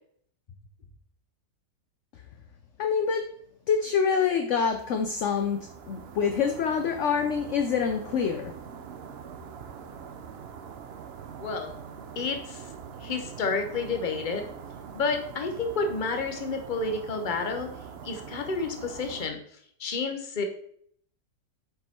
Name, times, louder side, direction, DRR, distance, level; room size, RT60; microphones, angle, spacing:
voice 1, 2.8-3.2 3.7-8.5, left 6 dB, 60° left, 6 dB, 0.8 m, -26 dB
sound 1, 4.7-19.3, right 6 dB, 60° right, 0.6 m, -43 dB
voice 2, 11.4-11.7 12.2-12.7 13.0-14.5 14.9-17.7 18.0-19.4 19.8-20.4, left 4 dB, 35° left, 5 dB, 0.9 m, -30 dB
7.5 x 4.8 x 4.3 m, 0.64 s
omnidirectional pair, 1.8 m